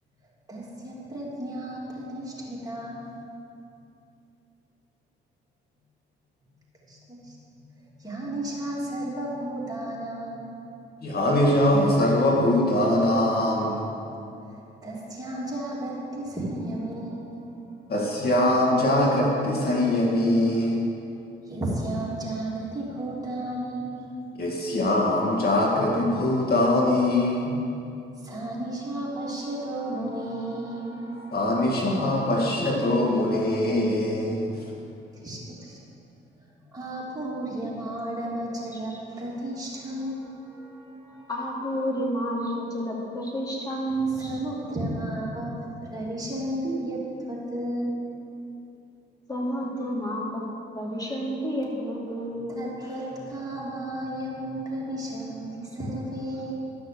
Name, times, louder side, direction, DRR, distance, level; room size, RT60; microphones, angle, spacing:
voice 1, 0.5-3.2 6.9-7.6 8.0-10.5 14.4-17.6 21.4-24.1 28.2-31.4 34.7-34.8 35.1-35.8 36.7-41.3 44.1-48.0 52.5-56.5, right 1 dB, 20° right, -5 dB, 2.9 m, -33 dB
voice 2, 11.0-13.8 17.9-20.8 24.4-27.6 31.3-34.5, left 1 dB, 50° left, -2 dB, 2.0 m, -22 dB
voice 3, 41.3-44.4 49.3-50.4 50.7-52.5, equal, 20° left, -3 dB, 2.7 m, -30 dB
12.0 x 6.3 x 6.9 m, 2.7 s
cardioid pair, 90°, 20 cm